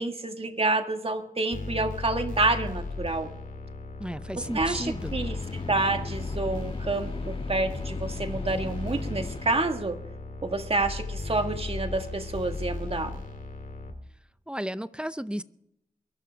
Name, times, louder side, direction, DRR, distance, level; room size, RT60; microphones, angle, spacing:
voice 1, 0.0-3.3 4.4-10.0 10.4-13.2, right 2 dB, 40° right, 6 dB, 1.8 m, -28 dB
sound 1, 1.5-13.9, left 3 dB, 70° left, 2.4 m, -36 dB
voice 2, 4.0-5.1 14.5-15.4, equal, 5° right, 14 dB, 0.7 m, -33 dB
sound 2, 4.4-9.6, left 2 dB, 40° left, 2.0 m, -40 dB
22.5 x 12.5 x 3.5 m, 0.79 s
wide cardioid pair, 65°, 14 cm